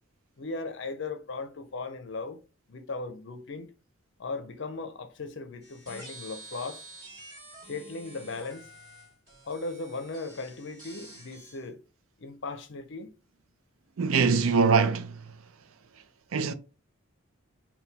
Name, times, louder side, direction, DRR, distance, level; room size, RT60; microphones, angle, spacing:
voice 1, 0.4-2.4 2.7-3.7 4.2-6.8 7.7-8.7 9.5-11.8 12.2-13.1, left 3 dB, 60° left, 0.6 m, -37 dB
sound 1, 5.6-11.6, right 2 dB, 20° right, 1.9 m, -48 dB
voice 2, 14.0-15.2 16.3-16.5, right 5 dB, 85° right, 0.5 m, -23 dB
3.9 x 2.2 x 4.0 m
head